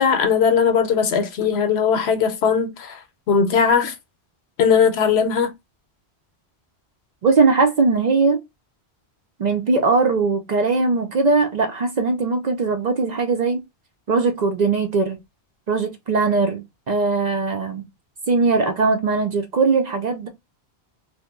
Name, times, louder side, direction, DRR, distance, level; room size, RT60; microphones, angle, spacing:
voice 1, 0.0-3.0 3.3-3.9 4.6-5.5, left 6 dB, 80° left, 0.9 m, -19 dB
voice 2, 7.2-8.4 9.4-13.6 14.1-15.2 15.7-17.8 18.3-20.3, right 4 dB, 55° right, 0.5 m, -20 dB
2.9 x 2.1 x 3.5 m
omnidirectional pair, 1.1 m